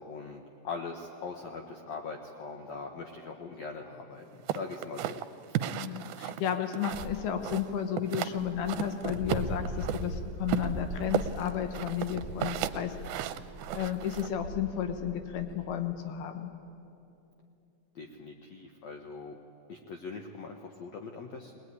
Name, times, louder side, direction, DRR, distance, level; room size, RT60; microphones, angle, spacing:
voice 1, 0.0-5.6 18.0-19.4 19.7-21.6, left 4 dB, 65° left, 3 dB, 1.8 m, -41 dB
sound 1, 4.5-7.2 7.4-8.4 8.7-10.0 10.5-14.3, right 11 dB, 80° right, 2.4 m, -34 dB
voice 2, 5.7-13.3 13.7-16.5, left 9 dB, 80° left, 7 dB, 3.1 m, -33 dB
Dog, 6.9-7.5 8.0-8.1 8.3-15.7, equal, 35° left, 5.1 m, -40 dB
21.5 x 20.0 x 9.7 m, 2.7 s
omnidirectional pair, 4.5 m